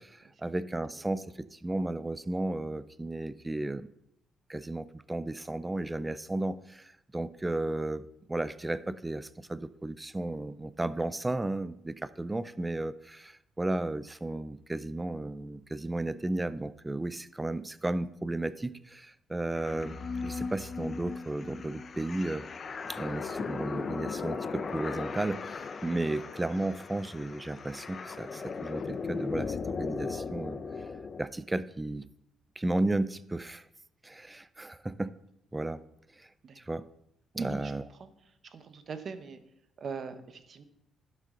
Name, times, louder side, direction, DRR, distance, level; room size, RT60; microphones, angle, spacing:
voice 1, 0.0-3.9 4.5-8.0 8.3-22.4 22.9-30.6 31.2-32.1 32.6-33.6 34.0-35.1 35.5-35.8 36.2-36.3 36.6-36.8 37.3-37.8, right 2 dB, 15° right, 16 dB, 0.4 m, -34 dB
sound 1, 19.5-31.2, left 5 dB, 45° left, 0.6 m, -37 dB
voice 2, 37.3-37.7 38.0-38.1 38.4-39.4 39.8-40.6, right 5 dB, 50° right, 10 dB, 0.9 m, -40 dB
11.5 x 6.6 x 3.8 m, 0.79 s
cardioid pair, 90°, 0 cm